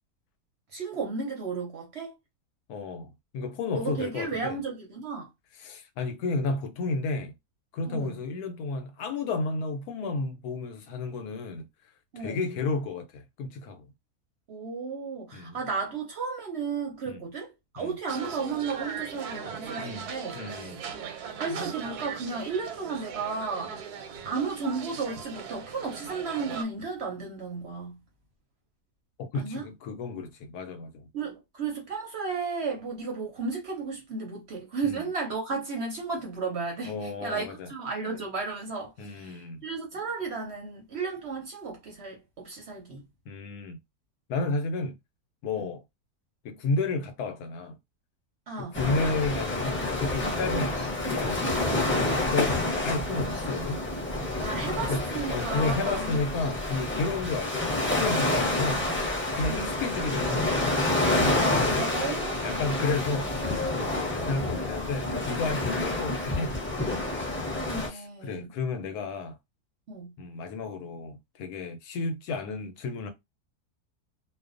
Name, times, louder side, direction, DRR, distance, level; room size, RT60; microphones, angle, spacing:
voice 1, 0.7-2.1 3.7-5.3 7.8-8.2 12.1-12.4 14.5-20.3 21.4-23.7 24.1-28.0 29.3-29.7 31.1-43.0 45.5-45.7 48.5-48.7 54.4-56.3 59.5-59.6 61.7-62.7 67.6-68.5 69.9-70.1, right 4 dB, 55° right, 0.8 m, -34 dB
voice 2, 2.7-4.6 5.6-7.3 7.7-11.7 12.2-13.8 15.3-15.6 17.1-17.2 17.8-18.0 19.5-20.8 29.2-31.1 34.8-35.0 36.9-37.7 39.0-39.6 43.3-43.8 44.3-45.0 45.4-45.8 46.4-47.8 48.6-53.8 54.9-55.0 55.3-58.9 59.3-61.9 62.4-66.5 67.9-69.4 70.2-73.1, left 3 dB, 80° left, 1.1 m, -32 dB
sound 1, 18.1-26.6, right 6 dB, 85° right, 1.1 m, -39 dB
sound 2, 48.7-67.9, left 2 dB, 10° left, 0.6 m, -28 dB
2.5 x 2.2 x 2.4 m
omnidirectional pair, 1.6 m